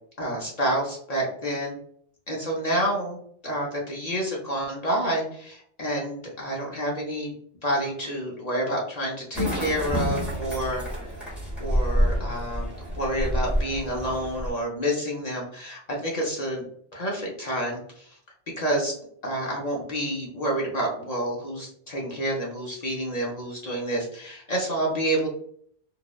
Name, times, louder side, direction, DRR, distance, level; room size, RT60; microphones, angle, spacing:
voice 1, 0.2-1.7 2.3-3.2 3.4-7.3 7.6-10.8 11.6-16.6 16.9-18.1 18.6-18.9 19.2-25.3, right 1 dB, 50° left, -2 dB, 0.5 m, -28 dB
sound 1, 9.3-14.5, equal, ahead, 0.8 m, -28 dB
2.7 x 2.0 x 2.3 m, 0.64 s
omnidirectional pair, 1.2 m